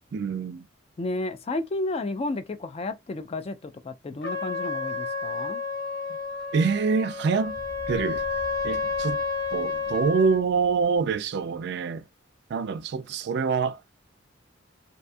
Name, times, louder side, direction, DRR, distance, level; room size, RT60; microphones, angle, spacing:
voice 1, 0.1-0.7 6.5-7.6 7.9-8.2 8.6-9.2 9.5-12.1 12.5-13.8, right 5 dB, 60° right, 0.3 m, -25 dB
voice 2, 1.0-5.6, left 2 dB, 30° left, 0.3 m, -32 dB
Trumpet, 4.2-10.4, left 4 dB, 60° left, 1.2 m, -30 dB
sound 1, 6.2-6.3 7.4-11.2, right 1 dB, 20° right, 0.7 m, -47 dB
2.6 x 2.3 x 2.5 m
head